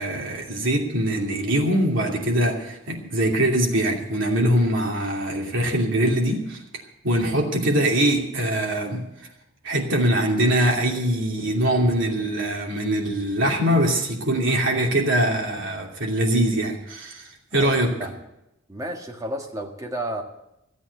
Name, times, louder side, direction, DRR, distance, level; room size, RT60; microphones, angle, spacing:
voice 1, 0.0-6.6 7.0-9.0 9.6-17.9, right 1 dB, 60° right, 0 dB, 2.8 m, -22 dB
voice 2, 17.5-18.3 18.7-20.2, right 1 dB, 15° right, 2 dB, 1.6 m, -32 dB
14.0 x 8.5 x 8.4 m, 0.86 s
head